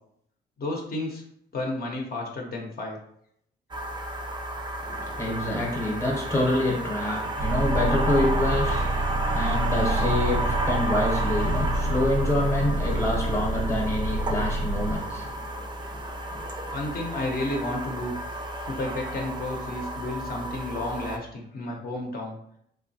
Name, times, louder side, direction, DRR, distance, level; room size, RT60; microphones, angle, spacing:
voice 1, 0.6-1.2 1.5-3.0 16.7-18.2 18.7-22.4, left 2 dB, 50° left, 0 dB, 0.6 m, -32 dB
sound 1, 3.7-21.2, right 1 dB, 25° right, 0.4 m, -32 dB
voice 2, 4.8-16.7 17.1-17.2, left 1 dB, 15° left, 0 dB, 0.7 m, -27 dB
sound 2, 7.4-14.9, right 1 dB, 85° right, 0.6 m, -28 dB
2.9 x 2.2 x 2.6 m, 0.70 s
cardioid pair, 90°, 20 cm